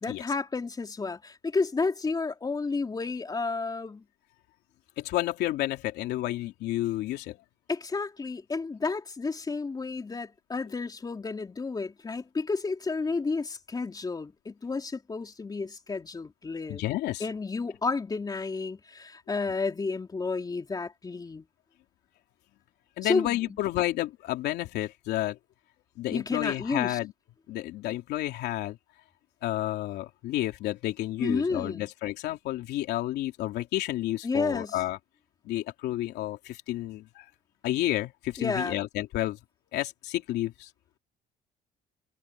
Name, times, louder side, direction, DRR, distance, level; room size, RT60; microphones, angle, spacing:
voice 1, 0.0-4.0 7.7-16.8 17.2-21.5 23.0-23.6 26.1-27.0 31.2-31.9 34.2-34.8 38.4-38.8, left 4 dB, 25° left, 3.4 m, -31 dB
voice 2, 5.0-7.4 16.7-17.3 23.0-25.4 26.0-27.1 27.5-28.8 29.4-35.0 35.4-37.3 37.6-39.4 39.7-40.7, left 15 dB, 80° left, 3.2 m, -30 dB
cardioid pair, 110°, 17 cm